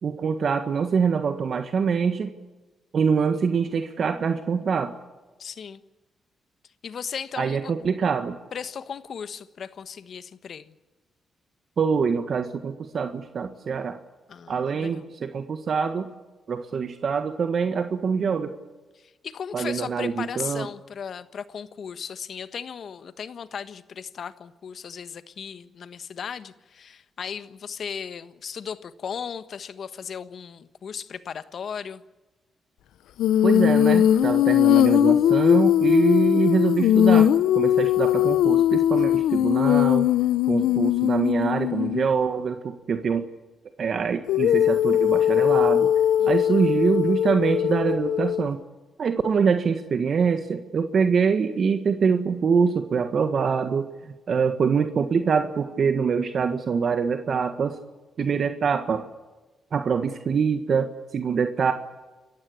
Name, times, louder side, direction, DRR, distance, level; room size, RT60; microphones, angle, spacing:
voice 1, 0.0-2.3 2.9-4.9 7.4-8.4 11.8-14.0 14.5-16.1 16.5-18.5 19.5-20.7 33.4-40.1 40.5-43.3 43.8-45.9 46.3-48.6 49.0-57.8 58.2-59.0 59.7-61.7, right 6 dB, 55° right, 8 dB, 1.6 m, -24 dB
voice 2, 5.4-5.8 6.8-7.7 8.5-10.7 14.3-15.0 19.0-32.0 36.0-36.2 40.6-40.8 46.2-46.5 58.2-58.5, left 7 dB, 60° left, 13 dB, 1.3 m, -36 dB
Female singing, 33.2-42.1 44.3-48.5, left 11 dB, 85° left, 0.6 m, -20 dB
28.5 x 15.0 x 8.5 m, 1.2 s
cardioid pair, 75°, 0 cm